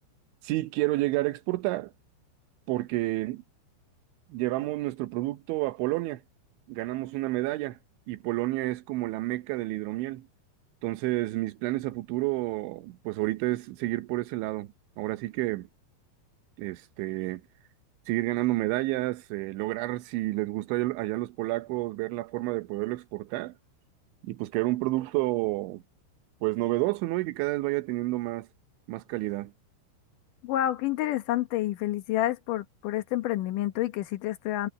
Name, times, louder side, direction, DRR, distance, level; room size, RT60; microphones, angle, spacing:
voice 1, 0.4-1.9 2.7-3.4 4.3-6.2 6.7-7.8 8.1-10.3 10.8-14.7 15.0-15.7 16.6-17.4 18.1-23.5 24.2-25.8 26.4-28.5 28.9-29.5, right 19 dB, 80° right, 3.2 m, -30 dB
voice 2, 30.4-34.7, left 13 dB, 85° left, 1.8 m, -29 dB
omnidirectional pair, 5.5 m